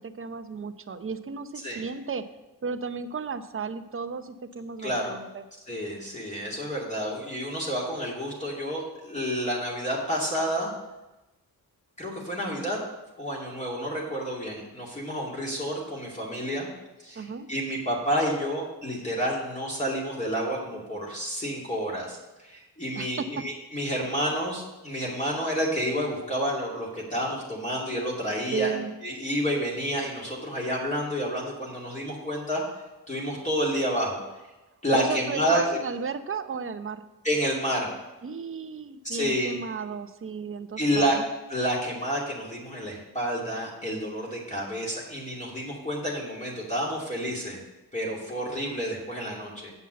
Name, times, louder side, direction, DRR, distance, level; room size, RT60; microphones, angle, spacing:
voice 1, 0.0-2.3 2.6-5.4 17.2-17.5 23.0-23.3 28.5-28.9 34.9-37.0 38.2-41.2, right 5 dB, 35° right, 10 dB, 0.7 m, -34 dB
voice 2, 4.8-5.1 5.7-10.7 12.0-12.8 13.2-16.7 17.0-28.7 29.0-32.6 33.1-34.2 34.8-35.8 37.2-37.9 39.0-39.5 40.8-41.2 41.5-47.6 47.9-49.7, equal, 20° left, -4 dB, 2.6 m, -29 dB
8.1 x 5.6 x 7.6 m, 1.0 s
cardioid pair, 80°, 37 cm